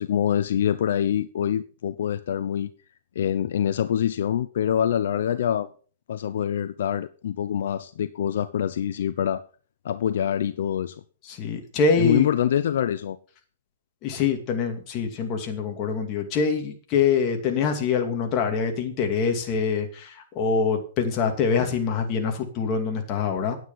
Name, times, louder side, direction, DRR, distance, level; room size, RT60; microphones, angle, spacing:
voice 1, 0.0-2.7 3.1-5.7 6.1-9.4 9.8-11.0 12.0-13.2, left 9 dB, 70° left, 0.7 m, -25 dB
voice 2, 11.3-12.3 14.0-23.6, left 5 dB, 30° left, 2.5 m, -24 dB
9.6 x 9.2 x 5.8 m
hypercardioid pair, 155°, 0 cm